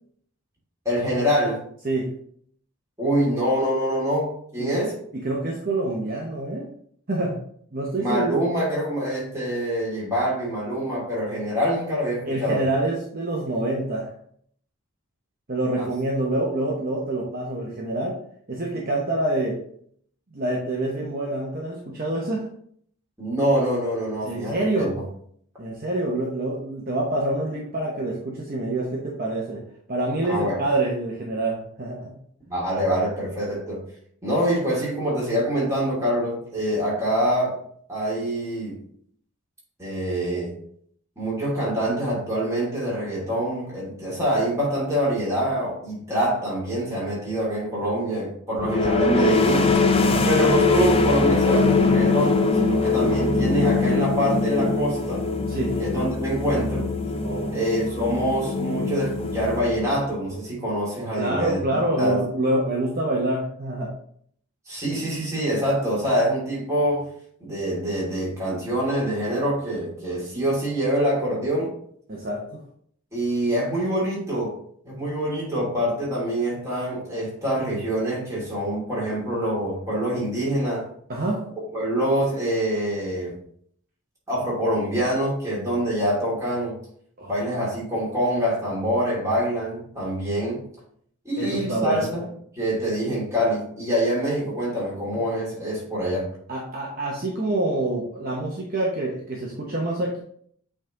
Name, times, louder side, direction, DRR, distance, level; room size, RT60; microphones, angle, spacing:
voice 1, 0.8-1.6 3.0-4.9 8.0-12.6 15.8-15.9 23.2-24.9 30.2-30.6 32.5-33.8 34.2-37.6 37.9-38.7 39.8-40.5 41.2-49.7 50.2-55.3 55.8-56.9 57.5-62.2 64.7-67.0 67.4-71.7 73.1-74.6 74.8-80.8 81.7-83.3 84.3-86.8 87.3-90.6 91.2-92.3 92.5-96.3, equal, 15° right, -6 dB, 3.0 m, -25 dB
voice 2, 5.2-6.7 7.1-7.4 7.7-8.4 12.3-14.1 15.5-18.2 18.5-19.6 20.3-22.5 24.2-25.0 25.6-29.6 29.9-32.2 50.0-50.3 55.5-55.8 57.2-57.6 61.1-63.9 72.1-72.6 81.1-81.4 87.2-87.4 91.4-92.1 96.5-100.2, right 2 dB, 40° right, -2 dB, 1.0 m, -26 dB
sound 1, 48.6-60.1, left 3 dB, 25° left, 0.5 m, -22 dB
8.4 x 3.6 x 3.9 m, 0.63 s
head